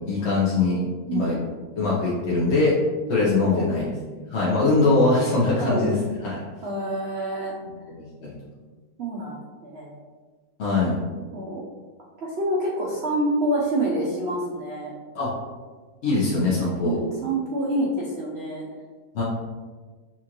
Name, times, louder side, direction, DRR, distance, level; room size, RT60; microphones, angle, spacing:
voice 1, 0.1-0.8 1.1-1.3 1.8-2.7 3.1-3.9 4.3-6.4 8.0-8.3 10.6-11.0 15.1-15.3 16.0-17.0 19.1-19.2, left 3 dB, 55° left, -7 dB, 0.8 m, -22 dB
voice 2, 5.6-5.9 6.6-7.5 9.0-9.4 9.6-10.0 11.3-11.6 12.2-14.9 16.8-18.6, right 1 dB, 75° right, -4 dB, 0.6 m, -27 dB
5.8 x 2.5 x 2.9 m, 1.4 s
omnidirectional pair, 1.9 m